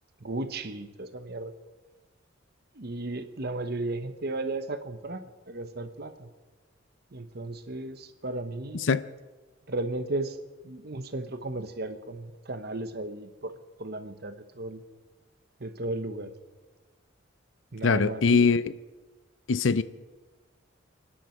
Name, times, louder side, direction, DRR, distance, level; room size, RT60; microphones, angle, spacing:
voice 1, 0.2-1.5 2.7-6.3 7.1-8.9 9.7-10.4 10.6-13.5 13.8-14.8 15.6-16.3 17.7-18.4, right 2 dB, 50° right, 1.1 m, -35 dB
voice 2, 8.7-9.1 17.8-18.7 19.5-19.8, left 5 dB, 70° left, 0.6 m, -22 dB
29.5 x 10.0 x 4.5 m
head